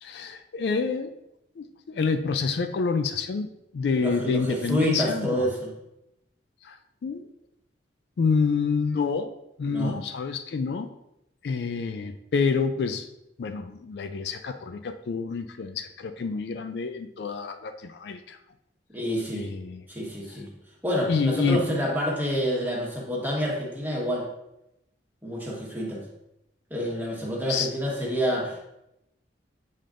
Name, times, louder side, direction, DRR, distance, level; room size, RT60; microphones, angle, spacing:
voice 1, 0.0-1.1 1.6-3.5 3.7-5.4 6.6-7.3 8.2-9.3 9.6-10.9 11.4-13.1 13.4-18.4 19.3-19.8 21.1-21.7 27.5-27.7, left 5 dB, 65° left, 8 dB, 0.3 m, -28 dB
voice 2, 4.0-5.7 9.6-9.9 18.9-19.5 19.9-20.5 20.8-24.3 25.2-26.0 26.7-28.6, equal, 10° right, -3 dB, 1.4 m, -28 dB
7.5 x 5.1 x 2.5 m, 0.84 s
head